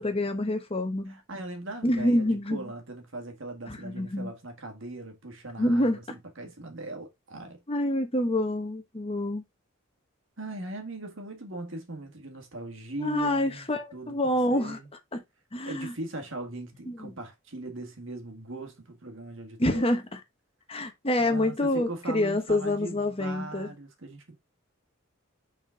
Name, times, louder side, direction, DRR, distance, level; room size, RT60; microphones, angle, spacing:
voice 1, 0.0-1.2 1.8-2.6 3.7-4.3 5.6-6.0 7.7-9.4 13.0-14.8 15.1-15.2 15.5-15.9 16.9-17.1 19.6-20.2 20.7-23.7, left 1 dB, 25° left, 1.0 m, -27 dB
voice 2, 1.1-7.6 10.4-14.9 15.7-19.8 21.2-24.4, right 2 dB, 65° right, 1.8 m, -40 dB
6.0 x 4.3 x 3.9 m
head